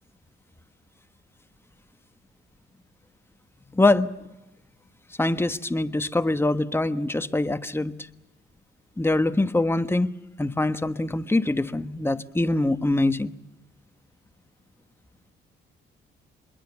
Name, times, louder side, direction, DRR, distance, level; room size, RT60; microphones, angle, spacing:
voice 1, 3.7-4.1 5.2-7.9 9.0-10.1 10.4-13.3, left 2 dB, 10° left, 1.2 m, -23 dB
26.0 x 22.0 x 7.1 m
cardioid pair, 90°, 20 cm